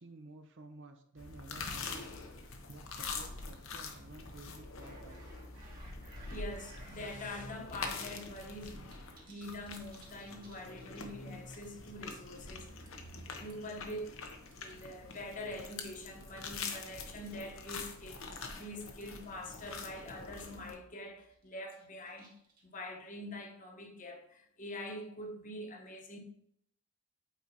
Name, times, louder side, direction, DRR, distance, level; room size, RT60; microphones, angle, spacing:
voice 1, 0.0-5.2, right 2 dB, 60° right, 0.7 m, -53 dB
sound 1, 1.2-20.7, left 4 dB, 75° left, 0.9 m, -45 dB
sound 2, 4.8-7.5 7.8-7.9 8.2-11.2 11.5-11.7 12.1-12.4 12.9-13.7 14.5-15.2 15.5-15.7 16.3-16.5 17.3-17.4 17.8-17.9 18.2-18.4 18.6-18.7 19.0-19.1 19.7-19.8 20.0-20.1 20.5-20.7 21.2-22.8, right 3 dB, 45° right, 1.8 m, -59 dB
voice 2, 6.3-14.3 14.6-22.3 22.6-26.2, left 1 dB, 40° left, 1.0 m, -45 dB
8.2 x 4.6 x 2.8 m
head